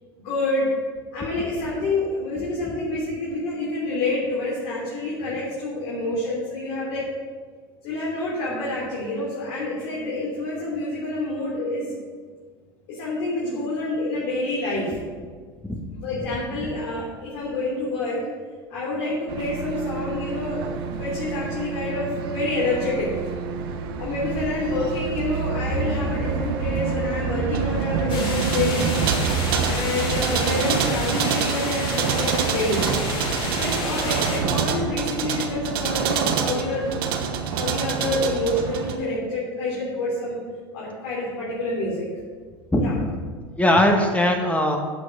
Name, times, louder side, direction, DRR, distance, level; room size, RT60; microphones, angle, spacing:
voice 1, 0.2-0.7 1.1-7.1 7.8-11.9 12.9-15.0 15.9-18.2 18.7-23.1 24.0-28.9 29.6-32.9 33.5-36.9 37.4-40.4 40.7-42.0 42.8-42.9, left 2 dB, 70° left, -7 dB, 3.7 m, -27 dB
sound 1, 19.3-39.0, right 6 dB, 70° right, 1.3 m, -26 dB
sound 2, 28.1-34.4, left 2 dB, 40° left, 3.4 m, -30 dB
voice 2, 42.7-43.2 43.5-44.8, left 1 dB, 10° left, 3 dB, 1.9 m, -20 dB
8.4 x 6.3 x 7.7 m, 1.5 s
hypercardioid pair, 90°, 13 cm